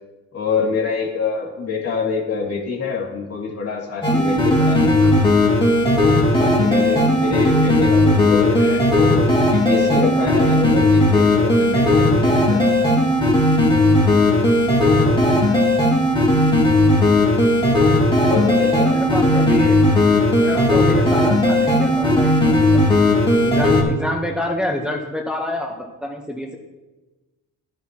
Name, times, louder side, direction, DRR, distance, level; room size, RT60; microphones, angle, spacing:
voice 1, 0.3-5.3 6.3-13.1 18.3-19.0 19.3-19.4, left 5 dB, 55° left, -2 dB, 2.7 m, -26 dB
sound 1, 4.0-23.8, left 1 dB, 15° left, 2.4 m, -16 dB
voice 2, 15.0-15.7 18.9-19.8 20.4-22.8 23.4-25.7 26.0-26.6, left 1 dB, 5° right, 1 dB, 1.1 m, -27 dB
11.0 x 10.0 x 3.0 m, 1.1 s
cardioid pair, 90°, 30 cm